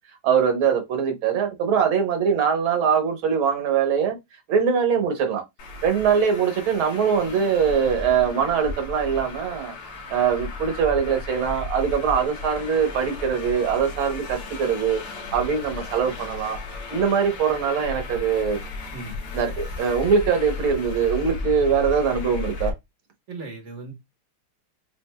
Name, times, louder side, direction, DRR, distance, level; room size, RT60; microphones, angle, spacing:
voice 1, 0.2-4.2 4.5-5.4 5.8-9.7 10.1-15.0 15.3-16.6 16.9-18.6 19.3-22.7, right 7 dB, 70° right, 1.8 m, -22 dB
Traffic noise roadway noise, 5.6-22.7, left 3 dB, 80° left, 2.3 m, -35 dB
voice 2, 23.3-23.9, right 3 dB, 45° right, 1.0 m, -36 dB
7.3 x 2.5 x 2.2 m
omnidirectional pair, 2.4 m